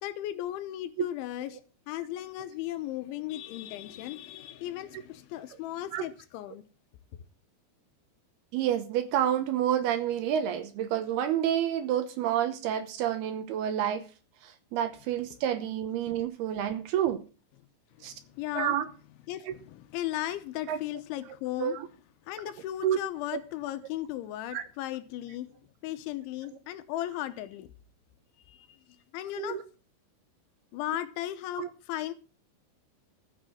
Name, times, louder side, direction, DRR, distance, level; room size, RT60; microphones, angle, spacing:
voice 1, 0.0-1.6 1.9-6.6 18.0-18.8 19.3-21.8 22.3-25.5 25.8-27.7 28.5-28.8 29.1-29.6 30.7-32.1, left 14 dB, 85° left, 3.3 m, -36 dB
voice 2, 8.5-14.0 14.4-17.2 18.0-18.1 18.5-18.9 19.5-19.6 20.7-20.8 21.6-21.9 22.8-23.0 24.5-24.6 29.4-29.6 31.6-31.7, right 10 dB, 75° right, 2.5 m, -29 dB
14.0 x 6.7 x 7.4 m
omnidirectional pair, 5.4 m